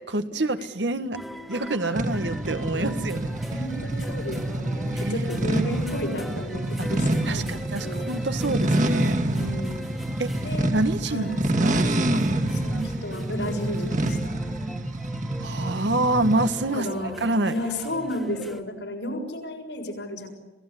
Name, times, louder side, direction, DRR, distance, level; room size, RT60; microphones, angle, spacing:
voice 1, 0.1-1.2 1.5-3.3 4.9-5.3 7.3-9.2 10.2-10.4 10.7-11.3 11.6-12.3 15.4-16.9 17.2-17.5, right 2 dB, 85° right, 9 dB, 1.7 m, -27 dB
sound 1, 1.1-18.6, equal, ahead, 1.7 m, -40 dB
sound 2, 2.0-16.6, right 1 dB, 45° right, 2.2 m, -27 dB
voice 2, 2.7-3.0 3.5-8.1 9.3-9.9 10.4-10.7 11.1-11.4 12.1-12.2 12.5-14.4 16.7-17.2 17.5-20.3, left 1 dB, 90° left, 2 dB, 6.6 m, -33 dB
27.5 x 17.5 x 10.0 m, 1.2 s
head